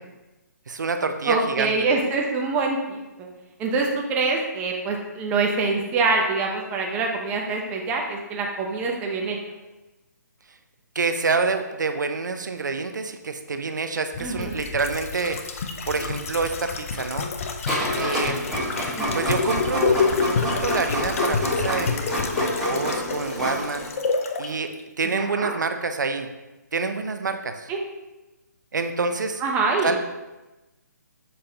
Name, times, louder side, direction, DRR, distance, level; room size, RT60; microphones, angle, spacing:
voice 1, 0.7-1.7 10.9-15.4 15.8-17.3 18.0-18.5 19.1-22.0 22.4-23.9 24.4-24.7 25.0-26.3 26.7-27.7 28.7-29.4 29.8-30.0, right 4 dB, 80° right, 7 dB, 0.6 m, -27 dB
voice 2, 1.3-3.3 3.6-9.4 14.2-14.6 18.9-19.2 25.1-25.5 27.7-27.8 29.4-30.0, right 3 dB, 15° right, 0 dB, 0.7 m, -25 dB
sound 1, 14.1-24.5 24.8-24.9, left 5 dB, 50° left, 0.7 m, -28 dB
Printer, 17.7-23.9, equal, ahead, 1.4 m, -29 dB
7.0 x 5.0 x 2.9 m, 1.1 s
hypercardioid pair, 150°, 10 cm